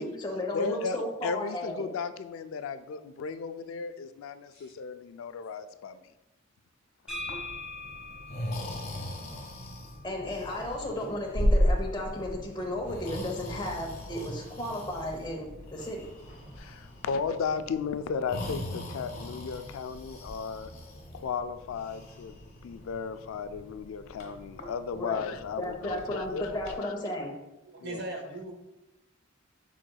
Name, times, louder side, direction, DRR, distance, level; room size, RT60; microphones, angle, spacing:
voice 1, 0.0-1.9 10.0-16.0 24.9-25.2 25.6-27.3, left 1 dB, 20° left, -1 dB, 0.7 m, -34 dB
voice 2, 0.5-6.0 16.6-20.7 21.1-26.9 27.8-28.1, left 5 dB, 85° left, 11 dB, 0.3 m, -35 dB
Breathing, 7.1-26.8, equal, 50° left, 1.3 m, -36 dB
sound 1, 7.1-10.9, left 2 dB, 5° right, 1.1 m, -43 dB
sound 2, 10.2-16.6, equal, 20° right, 0.7 m, -50 dB
voice 3, 27.7-28.5, right 2 dB, 55° right, 3 dB, 0.8 m, -39 dB
6.1 x 3.8 x 2.3 m, 0.97 s
head